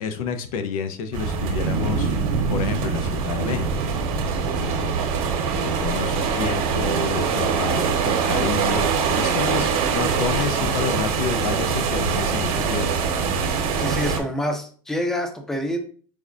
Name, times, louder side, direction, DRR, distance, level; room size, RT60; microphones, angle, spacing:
voice 1, 0.0-2.2 2.5-3.7 4.6-4.9 5.5-12.9, left 6 dB, 85° left, 9 dB, 0.5 m, -29 dB
sound 1, 1.1-14.2, right 6 dB, 75° right, 0.8 m, -23 dB
voice 2, 13.7-15.8, left 1 dB, ahead, 6 dB, 0.4 m, -27 dB
4.7 x 2.1 x 2.4 m, 0.43 s
supercardioid pair, 120°, 18 cm